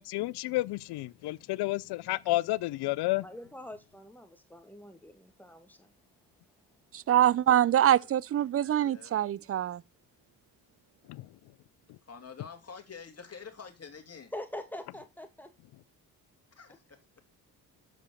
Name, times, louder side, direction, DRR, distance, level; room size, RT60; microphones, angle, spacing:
voice 1, 0.0-3.2 11.1-11.3, left 18 dB, 70° left, 0.5 m, -31 dB
voice 2, 3.2-5.9 14.3-15.5, left 1 dB, 5° left, 1.8 m, -44 dB
voice 3, 6.9-9.8, right 11 dB, 35° right, 0.4 m, -24 dB
voice 4, 7.5-8.4 8.7-9.2 12.1-14.3 16.6-17.0, left 6 dB, 35° left, 2.4 m, -48 dB
6.4 x 5.1 x 6.9 m
supercardioid pair, 55°, 41 cm